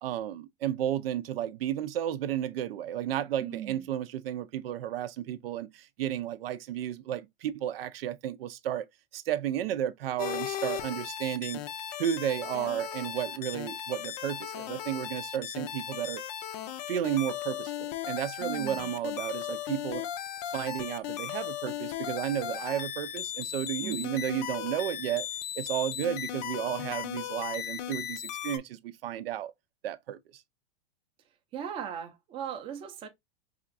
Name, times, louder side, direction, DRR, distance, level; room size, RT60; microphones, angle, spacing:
voice 1, 0.0-8.9 9.1-11.6 12.0-16.2 16.9-20.1 20.5-25.3 25.6-29.5 29.8-30.4, right 11 dB, 80° right, 0.5 m, -33 dB
voice 2, 3.4-3.9 18.4-18.9 23.8-24.2 31.5-33.1, right 9 dB, 20° right, 0.5 m, -38 dB
sound 1, 10.2-28.6, left 11 dB, 45° left, 0.5 m, -37 dB
4.8 x 2.4 x 2.4 m
supercardioid pair, 145°, 29 cm